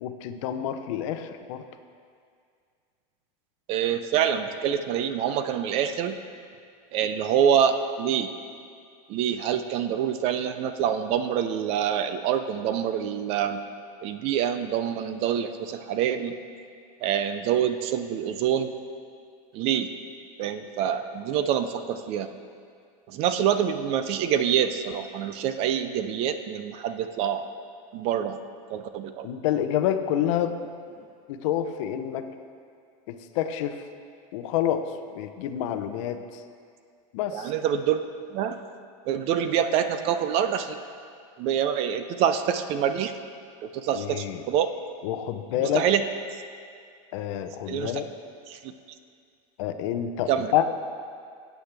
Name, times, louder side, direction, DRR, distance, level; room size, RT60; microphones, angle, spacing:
voice 1, 0.0-1.6 29.2-30.6 31.3-32.3 33.1-33.8 34.3-34.9 35.1-36.4 37.1-37.5 43.9-44.4 45.0-45.8 47.1-48.1 49.6-50.7, left 10 dB, 60° left, 9 dB, 0.6 m, -28 dB
voice 2, 3.7-6.2 6.9-8.3 9.1-13.6 14.0-16.4 17.0-18.7 19.5-19.9 20.4-22.3 23.1-27.5 27.9-28.4 28.7-29.3 37.3-38.0 38.3-38.6 39.1-40.8 41.4-43.2 43.6-44.7 45.6-46.0 47.7-47.9 48.5-48.7 50.3-50.5, right 9 dB, 35° right, 10 dB, 0.4 m, -26 dB
16.5 x 8.2 x 3.4 m, 2.2 s
supercardioid pair, 170°, 18 cm